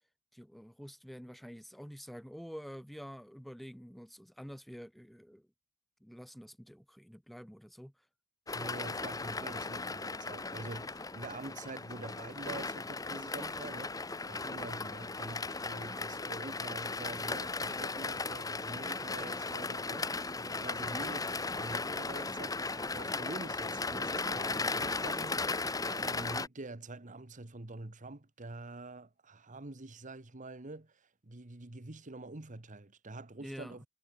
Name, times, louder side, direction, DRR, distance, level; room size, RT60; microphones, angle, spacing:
voice 1, 0.3-5.5 6.0-8.0 20.8-21.1 33.4-33.8, equal, ahead, 0.7 m, -48 dB
sound 1, 8.5-26.5, left 3 dB, 20° left, 1.1 m, -36 dB
voice 2, 8.5-14.0 14.3-33.8, right 2 dB, 40° right, 1.4 m, -46 dB
head